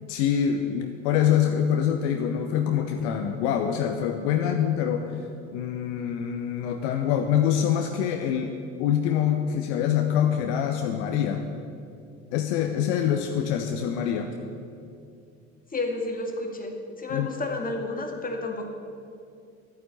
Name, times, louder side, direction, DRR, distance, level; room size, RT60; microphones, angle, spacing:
voice 1, 0.0-8.5 8.8-11.4 12.3-14.3 17.1-17.3, left 9 dB, 60° left, 5 dB, 1.0 m, -25 dB
voice 2, 15.7-18.7, left 2 dB, 20° left, 2 dB, 2.2 m, -31 dB
12.0 x 9.1 x 8.4 m, 2.4 s
figure-of-eight pair, 60°, 39 cm